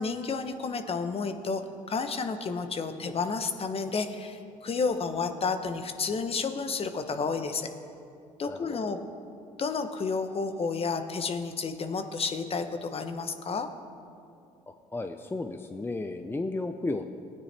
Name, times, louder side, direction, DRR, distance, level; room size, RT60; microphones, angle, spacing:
voice 1, 0.0-1.6 1.9-7.7 8.4-9.0 9.6-13.7, left 4 dB, 40° left, 8 dB, 1.0 m, -31 dB
voice 2, 8.5-9.0 14.7-17.1, left 2 dB, 15° left, 7 dB, 0.6 m, -34 dB
18.0 x 9.5 x 3.4 m, 2.5 s
supercardioid pair, 70°, 16 cm